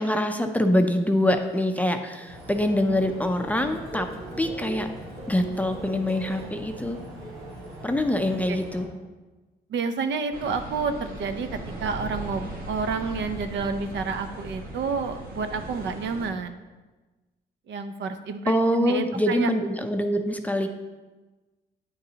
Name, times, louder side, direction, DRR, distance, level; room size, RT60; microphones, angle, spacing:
voice 1, 0.0-4.1 4.4-4.9 5.3-7.0 7.8-8.9 18.5-20.7, left 1 dB, 5° left, 6 dB, 0.4 m, -24 dB
sound 1, 0.8-2.7 3.0-8.6, right 3 dB, 30° right, 1.5 m, -43 dB
sound 2, 2.3-8.9, right 1 dB, 85° right, 2.0 m, -42 dB
voice 2, 9.7-16.6 17.7-19.5, right 5 dB, 65° right, 9 dB, 0.5 m, -29 dB
sound 3, 10.3-16.3, right 1 dB, 45° right, 1.4 m, -38 dB
9.4 x 3.9 x 2.8 m, 1.2 s
cardioid pair, 90°, 20 cm